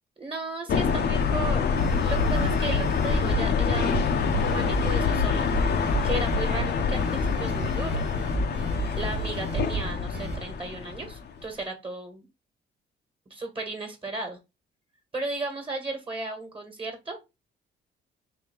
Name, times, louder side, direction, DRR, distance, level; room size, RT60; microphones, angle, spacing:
voice 1, 0.2-1.6 2.0-4.0 4.4-5.5 6.0-8.0 8.9-12.3 13.3-14.4 15.1-17.2, right 2 dB, 25° right, 3 dB, 1.5 m, -35 dB
sound 1, 0.7-11.4, left 6 dB, 55° left, 0.7 m, -26 dB
sound 2, 1.7-10.4, right 6 dB, 60° right, 1.2 m, -34 dB
3.6 x 2.8 x 4.4 m, 0.25 s
cardioid pair, 90°, 20 cm